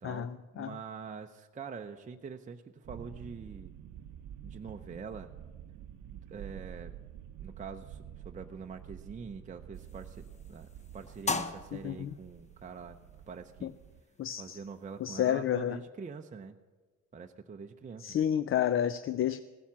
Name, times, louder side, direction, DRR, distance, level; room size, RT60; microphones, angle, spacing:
voice 1, 0.0-0.7 11.7-12.1 13.6-13.7 14.2-14.6 15.0-15.8 18.0-19.4, left 10 dB, 45° left, 14 dB, 0.4 m, -30 dB
voice 2, 0.5-3.7 4.4-5.3 6.3-7.0 7.4-13.0 13.3-13.7 14.4-16.6 17.1-18.2, right 5 dB, 25° right, 4 dB, 0.6 m, -44 dB
sound 1, 2.8-14.0, right 10 dB, 80° right, 0.7 m, -49 dB
sound 2, 9.7-15.2, left 3 dB, 25° left, 0.8 m, -41 dB
16.0 x 7.1 x 7.2 m, 1.3 s
cardioid pair, 90°, 30 cm